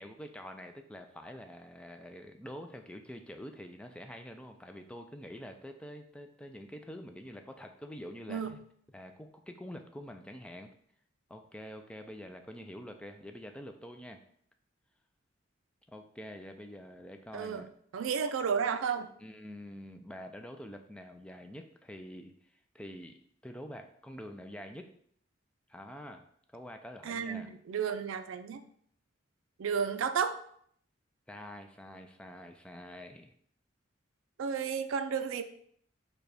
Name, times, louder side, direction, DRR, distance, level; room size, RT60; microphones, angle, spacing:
voice 1, 0.0-8.4 8.9-10.7 11.3-14.2 15.9-17.7 19.2-23.2 23.4-24.9 25.7-26.2 26.5-27.5 31.3-33.3, equal, 5° left, 5 dB, 0.3 m, -46 dB
voice 2, 17.3-17.7 17.9-19.1 27.0-28.6 29.6-30.4 34.4-35.4, right 6 dB, 85° right, 10 dB, 0.4 m, -32 dB
4.8 x 2.2 x 4.8 m, 0.64 s
head